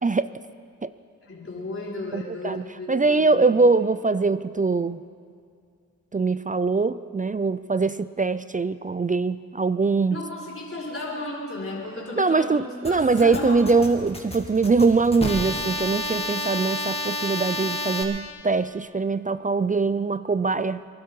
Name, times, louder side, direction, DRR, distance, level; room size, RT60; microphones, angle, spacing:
voice 1, 1.2-3.5 10.1-13.6, left 2 dB, 40° left, -5 dB, 4.2 m, -34 dB
voice 2, 2.1-5.0 6.1-10.2 12.2-20.8, right 4 dB, 25° right, 14 dB, 0.4 m, -22 dB
sound 1, 12.8-18.0, left 1 dB, 20° left, 2.3 m, -30 dB
23.5 x 11.0 x 4.7 m, 2.3 s
cardioid pair, 55°, 32 cm